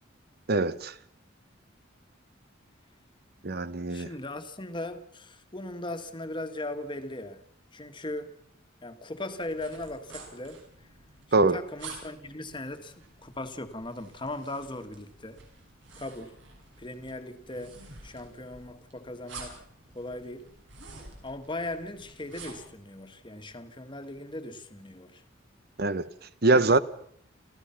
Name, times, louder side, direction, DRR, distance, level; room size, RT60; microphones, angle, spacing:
voice 1, 0.5-0.9 3.4-4.1 11.3-11.6 25.8-26.1 26.4-26.8, right 3 dB, 55° right, 1.0 m, -23 dB
voice 2, 3.9-7.4 7.7-8.4 8.8-10.6 11.3-15.4 15.9-16.4 16.8-17.8 18.0-19.6 19.9-20.5 21.2-25.2 26.5-26.8, left 1 dB, 25° left, 1.7 m, -38 dB
sound 1, 9.4-22.8, right 4 dB, 70° right, 6.5 m, -49 dB
30.0 x 15.5 x 5.9 m
head